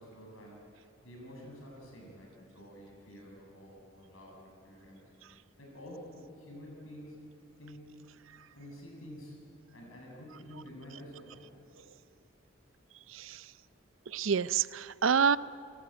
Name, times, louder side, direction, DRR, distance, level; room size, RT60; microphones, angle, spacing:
voice 1, 0.0-5.0 5.6-7.2 7.6-7.9 8.5-9.4 9.7-11.5, equal, 90° left, -1 dB, 7.7 m, -49 dB
voice 2, 14.1-15.4, right 6 dB, 75° right, 16 dB, 0.6 m, -27 dB
29.0 x 19.0 x 8.9 m, 2.7 s
head